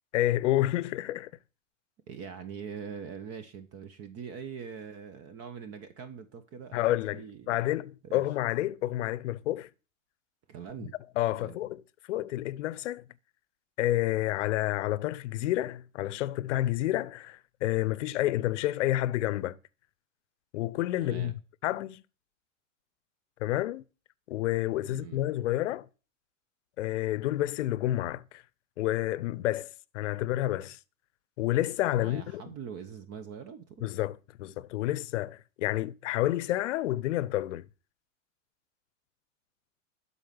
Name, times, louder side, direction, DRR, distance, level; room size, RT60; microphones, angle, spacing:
voice 1, 0.1-1.3 6.7-9.7 11.2-11.8 12.1-13.1 13.8-19.6 20.5-22.0 23.4-23.8 24.3-25.9 26.8-28.4 28.8-30.8 31.4-32.4 33.8-37.7, left 14 dB, 60° left, 0.7 m, -29 dB
voice 2, 2.1-7.7 8.0-8.2 10.5-10.9 11.4-11.6 21.0-21.3 24.9-25.2 31.9-33.9, right 7 dB, 35° right, 1.2 m, -43 dB
12.5 x 4.3 x 6.9 m
hypercardioid pair, 95°, 40 cm